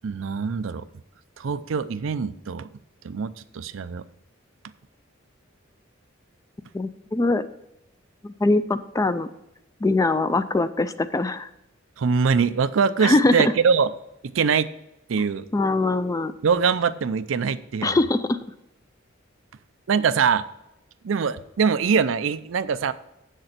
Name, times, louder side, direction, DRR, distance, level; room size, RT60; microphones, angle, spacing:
voice 1, 0.0-0.9 1.4-2.7 3.0-4.0 12.0-13.9 14.2-14.7 15.1-15.5 16.4-18.0 19.9-20.4 21.0-22.9, right 6 dB, 75° right, 14 dB, 0.5 m, -23 dB
voice 2, 6.7-7.5 8.2-9.3 9.8-11.5 13.0-13.5 15.5-16.3 17.8-18.4, left 2 dB, 15° left, 13 dB, 0.3 m, -22 dB
7.7 x 6.6 x 5.9 m, 0.88 s
head